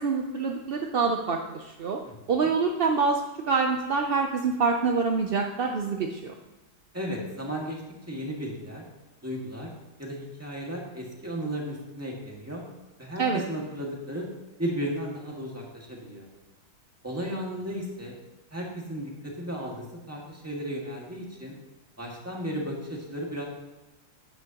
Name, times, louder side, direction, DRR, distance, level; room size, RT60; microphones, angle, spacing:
voice 1, 0.0-2.0 2.3-3.2 3.5-6.3 13.2-13.4, right 4 dB, 55° right, 3 dB, 0.6 m, -26 dB
voice 2, 6.9-7.8 8.1-8.8 9.2-9.7 10.0-12.6 13.0-14.3 14.6-16.3 17.0-18.2 18.5-21.5 22.0-23.5, equal, 10° right, -2 dB, 1.9 m, -34 dB
12.5 x 9.9 x 2.9 m, 1.1 s
omnidirectional pair, 1.7 m